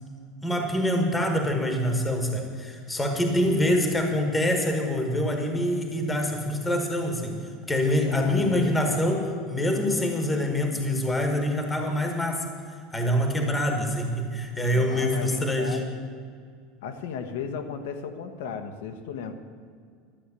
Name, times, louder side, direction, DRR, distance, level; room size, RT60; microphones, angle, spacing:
voice 1, 0.4-7.4 7.7-12.4 12.9-15.8, left 1 dB, 5° left, 3 dB, 1.3 m, -25 dB
voice 2, 3.2-3.7 8.1-8.7 14.7-15.9 16.8-19.3, left 6 dB, 80° left, 6 dB, 1.2 m, -35 dB
12.5 x 8.1 x 8.2 m, 2.1 s
supercardioid pair, 180°, 0 cm